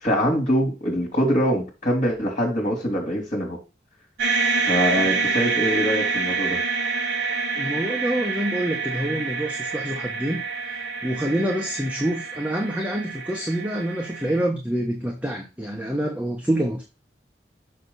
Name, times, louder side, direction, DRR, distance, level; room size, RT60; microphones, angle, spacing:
voice 1, 0.0-3.6 4.6-6.6, equal, 40° left, 3.3 m, -23 dB
sound 1, 4.2-14.4, right 4 dB, 75° right, 4.4 m, -27 dB
voice 2, 7.5-10.4 10.7-16.8, right 1 dB, 10° right, 1.1 m, -27 dB
6.7 x 6.6 x 4.1 m
head